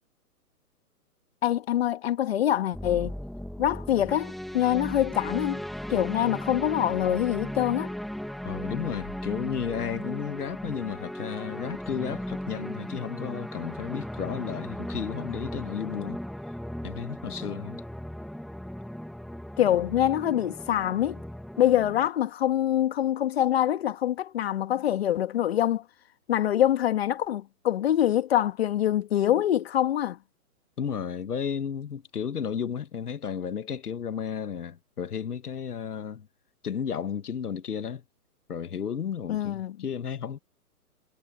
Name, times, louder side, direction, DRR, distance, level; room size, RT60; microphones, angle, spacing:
voice 1, 1.4-3.1 3.6-5.6 5.9-7.9 19.6-21.2 21.6-25.8 26.3-30.2 39.3-39.8, left 11 dB, 40° left, 1.6 m, -25 dB
sound 1, 2.7-22.1, equal, ahead, 1.0 m, -37 dB
voice 2, 8.4-16.2 16.8-17.8 30.8-36.3 36.6-38.0 38.5-40.4, left 7 dB, 85° left, 1.9 m, -33 dB
hypercardioid pair, 160°, 45 cm